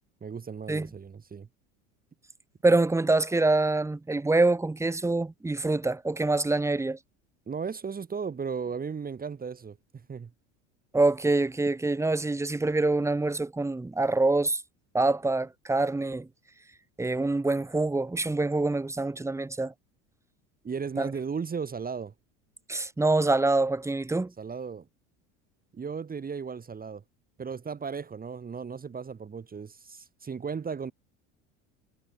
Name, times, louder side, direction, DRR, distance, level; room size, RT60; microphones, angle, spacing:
voice 1, 0.2-1.5 7.5-9.8 10.1-10.3 20.6-22.1 24.4-24.9 25.7-27.0 27.4-30.9, right 6 dB, 25° right, 2.2 m, -35 dB
voice 2, 2.6-7.0 10.9-14.6 14.9-16.3 17.0-19.7 21.0-21.1 22.7-24.3, right 2 dB, 10° right, 1.0 m, -25 dB
hypercardioid pair, 90°, 37 cm